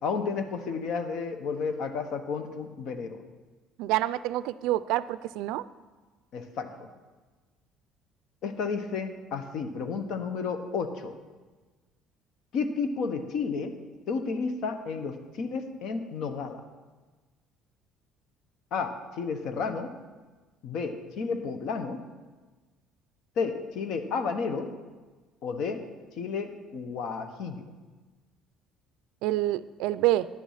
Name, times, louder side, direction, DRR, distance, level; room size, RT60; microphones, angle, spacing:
voice 1, 0.0-3.2 6.3-6.9 8.4-11.2 12.5-13.7 14.1-16.6 18.7-19.9 20.6-22.0 23.4-24.7 25.4-25.8 26.2-27.6, left 5 dB, 60° left, 8 dB, 1.0 m, -32 dB
voice 2, 3.8-5.7 29.2-30.3, right 15 dB, 85° right, 16 dB, 0.3 m, -27 dB
11.0 x 7.3 x 5.6 m, 1.3 s
cardioid pair, 140°, 0 cm